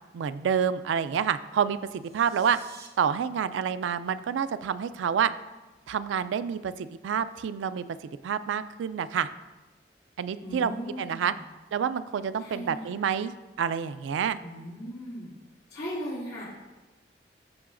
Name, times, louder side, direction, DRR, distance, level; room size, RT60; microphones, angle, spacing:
voice 1, 0.1-2.6 3.0-5.3 5.9-7.8 8.2-9.3 10.2-10.7 11.0-11.3 11.7-13.3 13.6-14.4, right 7 dB, 85° right, 13 dB, 0.3 m, -28 dB
sound 1, 1.8-2.9, right 6 dB, 55° right, 0.7 m, -51 dB
voice 2, 10.4-11.4 12.4-12.9 14.4-15.3 15.7-16.5, equal, 65° left, -10 dB, 2.5 m, -37 dB
14.0 x 4.7 x 2.5 m, 1.2 s
head